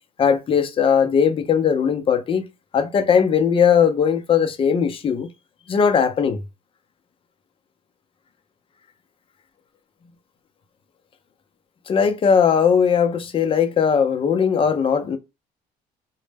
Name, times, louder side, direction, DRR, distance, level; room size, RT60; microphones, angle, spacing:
voice 1, 0.2-2.5 2.7-5.3 5.7-6.4 11.9-15.2, left 7 dB, 30° left, 0.4 m, -19 dB
2.0 x 2.0 x 3.3 m
cardioid pair, 110°, 17 cm